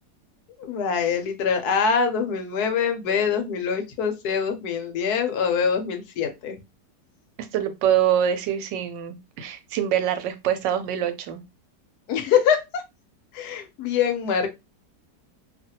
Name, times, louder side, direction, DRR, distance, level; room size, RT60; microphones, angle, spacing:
voice 1, 0.6-6.5 12.1-12.8 13.3-14.5, left 6 dB, 70° left, 1.0 m, -24 dB
voice 2, 7.4-11.4, right 10 dB, 90° right, 1.3 m, -25 dB
2.7 x 2.4 x 2.7 m
omnidirectional pair, 1.9 m